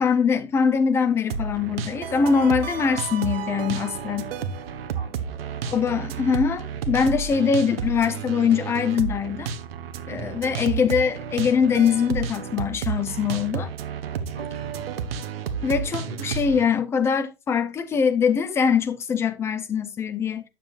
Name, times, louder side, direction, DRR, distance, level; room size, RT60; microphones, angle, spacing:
voice 1, 0.0-4.3 5.7-9.5 10.1-13.7 15.6-20.4, left 6 dB, 10° left, 0.5 m, -23 dB
sound 1, 1.3-16.7, right 6 dB, 80° right, 1.2 m, -31 dB
voice 2, 4.9-6.0 6.8-7.0 10.1-10.4 14.1-14.8 16.0-16.3, right 2 dB, 30° right, 5.0 m, -43 dB
9.1 x 7.4 x 2.4 m
supercardioid pair, 155°, 29 cm